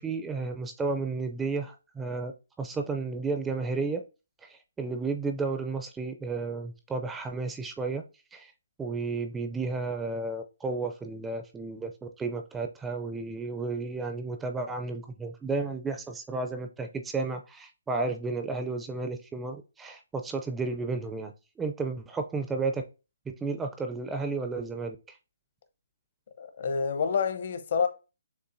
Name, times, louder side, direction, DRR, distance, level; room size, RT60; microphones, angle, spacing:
voice 1, 0.0-2.3 2.6-4.0 4.4-8.0 8.3-8.5 8.8-22.8 23.3-25.0, right 3 dB, 10° right, 0.4 m, -32 dB
voice 2, 26.4-27.9, left 5 dB, 55° left, 0.8 m, -28 dB
6.7 x 2.5 x 2.6 m
hypercardioid pair, 155°, 0 cm